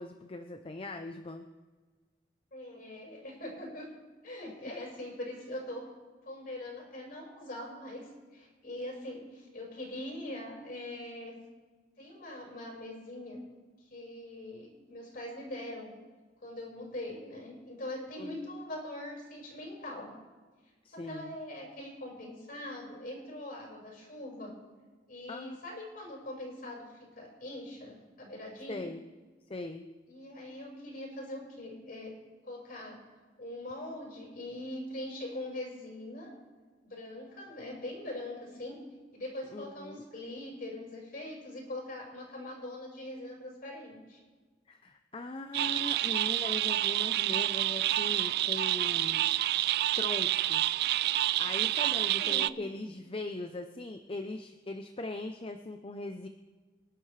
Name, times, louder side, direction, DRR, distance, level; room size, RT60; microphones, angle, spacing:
voice 1, 0.0-1.4 18.2-18.5 20.8-21.4 25.3-25.6 28.7-29.0 29.5-29.8 39.5-40.0 44.7-49.2 50.0-50.6 51.1-56.3, left 2 dB, 30° left, 6 dB, 0.6 m, -40 dB
voice 2, 2.5-3.9 4.2-5.9 6.3-11.3 12.0-13.4 13.9-15.9 16.4-20.1 20.9-24.6 25.1-28.9 30.1-32.1 32.4-33.0 33.4-36.3 36.8-38.8 39.1-44.2 51.7-52.6, left 1 dB, 50° left, -1 dB, 5.3 m, -42 dB
sound 1, 45.5-52.5, right 14 dB, 60° right, 0.3 m, -28 dB
25.5 x 11.5 x 3.3 m, 1.4 s
head